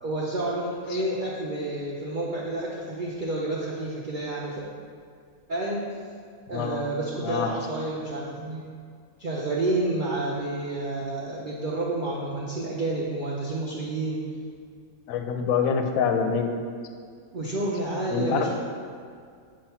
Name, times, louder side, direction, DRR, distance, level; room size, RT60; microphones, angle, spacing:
voice 1, 0.0-4.6 5.5-5.8 6.5-8.6 9.2-14.2 17.3-18.5, right 2 dB, 50° right, -5 dB, 0.6 m, -29 dB
voice 2, 6.5-6.8 7.2-7.5 15.1-16.6 18.1-18.5, left 6 dB, 70° left, 5 dB, 0.9 m, -26 dB
7.4 x 2.5 x 5.6 m, 2.1 s
omnidirectional pair, 1.6 m